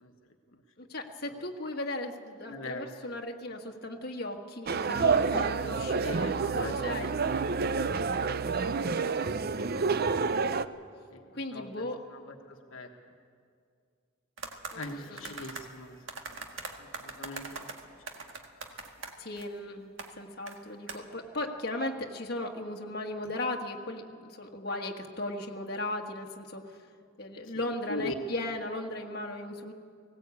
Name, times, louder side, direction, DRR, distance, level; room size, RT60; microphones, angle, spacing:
voice 1, 0.8-7.2 11.3-12.0 14.7-15.3 19.2-19.9 20.2-26.8 27.2-29.7, left 1 dB, 50° left, 1 dB, 1.6 m, -37 dB
voice 2, 2.5-2.9 6.0-7.3 9.5-9.7 11.1-11.2 11.5-12.9 14.7-16.0 16.8-17.7 27.5-27.6 27.9-28.1, left 2 dB, 80° left, 3 dB, 1.3 m, -41 dB
sound 1, 4.7-10.6, right 4 dB, 50° right, 0.5 m, -28 dB
sound 2, 14.4-15.7 16.1-19.5 20.0-20.1 20.5-20.6 20.9-21.0, right 4 dB, 65° right, 1.7 m, -41 dB
19.0 x 18.0 x 8.4 m, 2.3 s
head